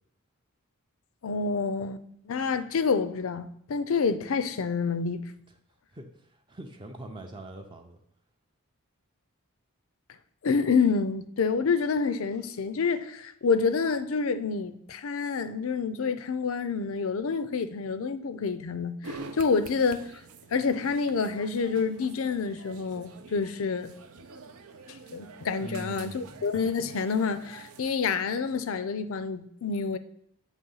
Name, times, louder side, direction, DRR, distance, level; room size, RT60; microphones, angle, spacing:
voice 1, 1.2-5.3 10.4-20.1 20.5-23.9 25.1-30.0, left 5 dB, 65° left, 0.5 m, -28 dB
voice 2, 5.9-8.0 25.6-26.4, right 1 dB, 20° right, 0.5 m, -43 dB
sound 1, 19.0-28.0, right 3 dB, 80° right, 0.6 m, -47 dB
8.1 x 3.1 x 5.5 m
head